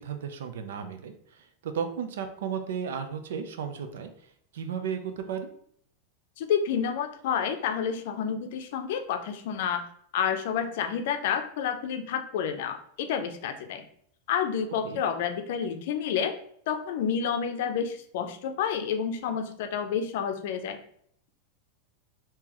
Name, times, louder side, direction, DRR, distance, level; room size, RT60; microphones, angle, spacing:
voice 1, 0.0-4.1 4.5-5.5 14.8-15.0, right 7 dB, 85° right, 7 dB, 0.5 m, -34 dB
voice 2, 6.4-9.8 10.1-13.9 14.3-16.3 16.7-20.8, left 7 dB, 60° left, 7 dB, 0.5 m, -29 dB
3.7 x 2.8 x 3.0 m, 0.65 s
supercardioid pair, 160°, 0 cm